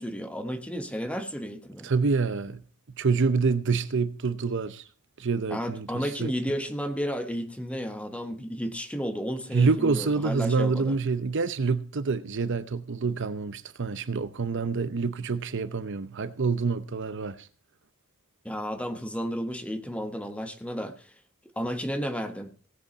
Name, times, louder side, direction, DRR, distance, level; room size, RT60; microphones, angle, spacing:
voice 1, 0.0-1.9 5.5-11.0 18.4-21.1 21.6-22.5, equal, 5° left, 1.1 m, -32 dB
voice 2, 1.8-2.6 3.0-4.8 5.2-6.3 9.5-17.4, right 4 dB, 55° right, 0.7 m, -27 dB
18.0 x 8.0 x 4.1 m
head